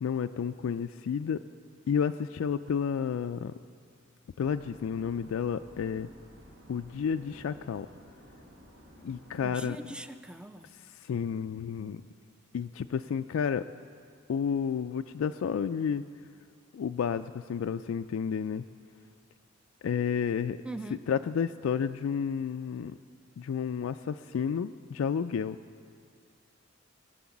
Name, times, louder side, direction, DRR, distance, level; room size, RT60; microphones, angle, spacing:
voice 1, 0.0-1.4 1.9-3.5 4.4-6.1 6.7-7.9 9.0-10.0 11.0-12.0 12.5-13.6 14.3-16.0 16.7-18.6 19.8-20.6 20.9-22.9 23.4-25.6, left 7 dB, 80° left, 9 dB, 0.3 m, -31 dB
sound 1, 4.4-9.5, equal, 70° right, 4.1 m, -53 dB
voice 2, 9.4-10.6 20.6-21.0, right 2 dB, 5° right, 10 dB, 0.5 m, -41 dB
20.0 x 8.5 x 7.1 m, 2.3 s
head